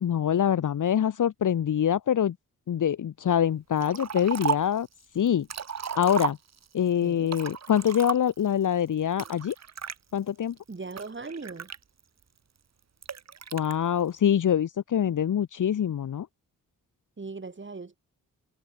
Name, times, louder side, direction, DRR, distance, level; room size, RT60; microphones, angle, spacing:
voice 1, 0.0-2.3 2.7-4.9 5.1-5.5 6.0-6.4 6.7-9.5 10.1-10.5 13.5-16.3, left 9 dB, 65° left, 1.1 m, -25 dB
Liquid, 3.8-4.8 5.3-6.8 7.3-8.5 9.2-10.0 10.6-12.2 13.0-13.7, right 7 dB, 50° right, 1.4 m, -34 dB
voice 2, 7.0-7.3 10.7-11.7 17.2-18.0, right 4 dB, 35° right, 5.3 m, -39 dB
cardioid pair, 75°, 34 cm